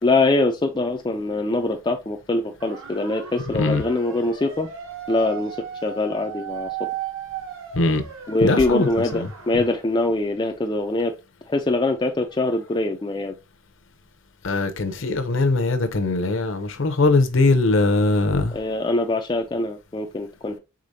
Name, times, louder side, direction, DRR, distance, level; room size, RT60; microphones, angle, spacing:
voice 1, 0.0-4.7 5.1-5.6 5.8-6.7 8.3-11.1 11.5-13.3 18.5-20.6, left 2 dB, 20° left, 0.3 m, -23 dB
sound 1, 2.6-9.8, right 8 dB, 60° right, 1.1 m, -36 dB
voice 2, 7.7-8.0 8.4-9.3 14.4-18.6, left 2 dB, 60° left, 0.7 m, -21 dB
4.9 x 3.7 x 2.7 m
head